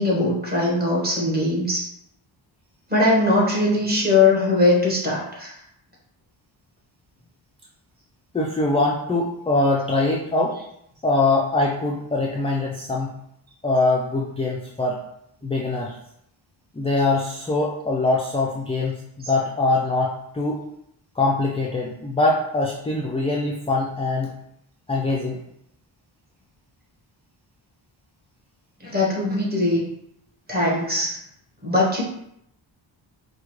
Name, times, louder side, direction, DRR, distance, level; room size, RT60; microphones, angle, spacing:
voice 1, 0.0-1.8 2.9-5.5 28.8-29.9 30.5-31.2 31.6-32.0, left 2 dB, 20° right, -4 dB, 1.2 m, -20 dB
voice 2, 8.3-10.6 11.0-13.2 13.6-15.0 15.4-16.0 16.7-20.6 21.2-24.3 24.9-25.4, left 2 dB, 15° left, -3 dB, 0.3 m, -23 dB
4.9 x 2.2 x 3.0 m, 0.76 s
wide cardioid pair, 120°, 47 cm